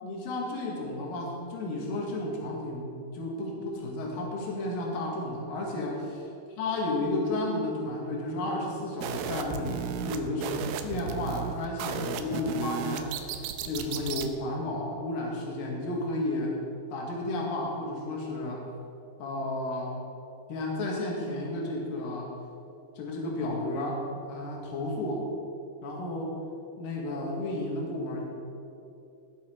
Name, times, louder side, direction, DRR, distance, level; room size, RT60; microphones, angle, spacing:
voice 1, 0.0-6.3 6.6-16.6 16.9-18.6 19.2-19.9 20.5-22.3 23.0-24.0 24.3-25.2 25.8-26.3 26.8-28.2, left 2 dB, 55° left, -2 dB, 3.3 m, -32 dB
sound 1, 9.0-14.3, right 8 dB, 85° right, 3.1 m, -35 dB
19.0 x 7.3 x 4.6 m, 2.7 s
omnidirectional pair, 5.3 m